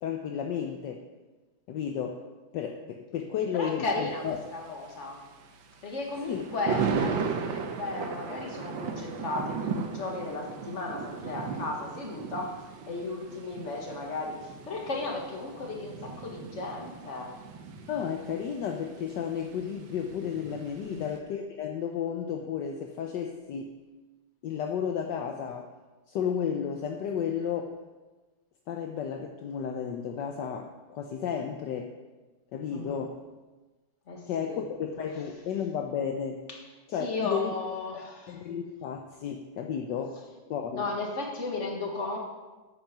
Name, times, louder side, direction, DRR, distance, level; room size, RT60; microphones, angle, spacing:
voice 1, 0.0-1.0 1.7-2.2 2.5-4.4 6.2-6.5 17.9-23.8 24.4-25.7 26.1-27.7 28.7-31.9 32.5-33.2 34.3-36.4 36.9-37.5 37.9-40.2 40.5-40.9, left 7 dB, 70° left, 3 dB, 1.3 m, -33 dB
voice 2, 3.5-5.2 5.8-12.5 12.9-17.3 20.8-21.0 32.7-33.0 34.1-34.6 36.5-36.6 37.0-38.4 40.7-42.2, left 3 dB, 40° left, 1 dB, 2.0 m, -35 dB
Thunder, 4.1-21.2, right 6 dB, 80° right, 1.7 m, -37 dB
9.5 x 8.6 x 6.0 m, 1.2 s
omnidirectional pair, 2.1 m